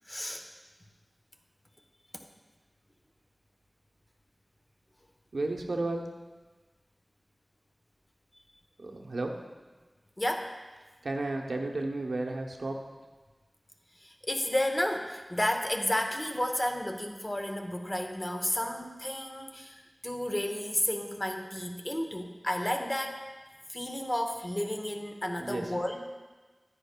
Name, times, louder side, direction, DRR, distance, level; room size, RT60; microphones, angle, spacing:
voice 1, 0.1-0.4 10.2-10.6 14.0-23.2 23.7-26.0, left 1 dB, 25° left, 4 dB, 0.9 m, -32 dB
voice 2, 5.3-6.1 8.8-9.4 11.0-12.8 25.4-25.7, right 2 dB, 85° right, 2 dB, 0.7 m, -33 dB
9.8 x 9.7 x 2.2 m, 1.3 s
wide cardioid pair, 55°, 0 cm